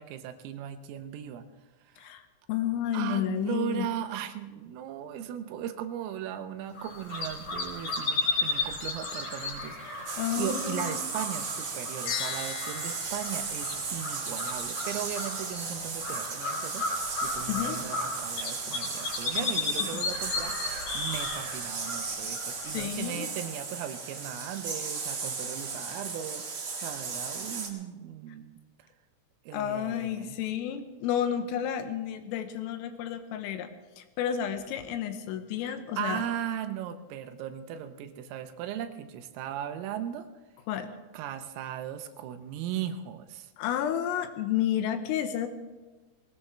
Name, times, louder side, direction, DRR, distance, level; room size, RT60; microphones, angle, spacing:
voice 1, 0.0-1.5 1.9-2.1 2.9-16.9 17.2-28.6 29.5-30.4 35.6-40.3 41.1-43.5, right 10 dB, 85° right, 8 dB, 3.5 m, -37 dB
voice 2, 2.0-3.9 9.9-11.0 17.5-17.8 19.4-19.5 19.8-20.0 22.6-23.3 29.5-33.7 34.0-36.2 40.7-40.9 43.6-45.5, left 10 dB, 90° left, 8 dB, 3.6 m, -31 dB
sound 1, 6.8-22.8, left 3 dB, 40° left, 4.2 m, -34 dB
sound 2, 10.0-27.7, right 4 dB, 70° right, 1.3 m, -36 dB
sound 3, 12.1-14.5, left 8 dB, 70° left, 3.5 m, -38 dB
20.0 x 18.5 x 3.3 m, 1.2 s
omnidirectional pair, 5.8 m